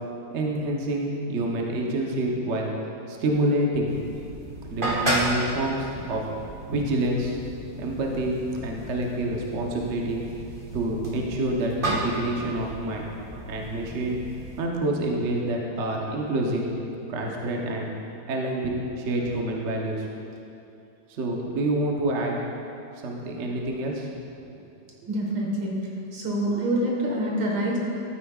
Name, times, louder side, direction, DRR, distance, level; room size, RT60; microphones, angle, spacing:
voice 1, 0.3-2.7 3.1-3.9 4.7-6.2 6.7-7.4 7.8-8.4 8.6-10.2 10.7-13.1 13.5-14.2 14.6-16.7 17.1-17.9 18.3-20.1 21.1-22.4 23.0-24.1, right 1 dB, 50° right, -1 dB, 0.9 m, -27 dB
sound 1, 3.9-14.6, right 1 dB, 30° right, 1.3 m, -33 dB
voice 2, 25.0-25.8 26.1-27.8, right 1 dB, 75° right, -2 dB, 2.2 m, -26 dB
13.0 x 9.1 x 2.4 m, 2.7 s
omnidirectional pair, 2.2 m